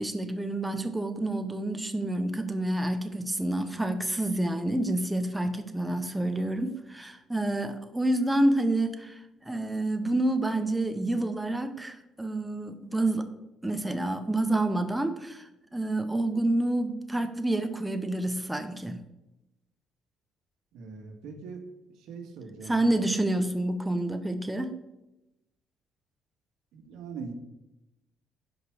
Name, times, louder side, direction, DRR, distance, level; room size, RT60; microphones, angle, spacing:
voice 1, 0.0-13.3 13.6-19.0 22.7-24.8, right 1 dB, 5° right, 8 dB, 0.7 m, -28 dB
voice 2, 20.7-21.6 21.9-23.0 26.7-27.3, right 5 dB, 85° right, 5 dB, 1.6 m, -41 dB
11.0 x 5.1 x 4.8 m, 0.93 s
cardioid pair, 140°, 0 cm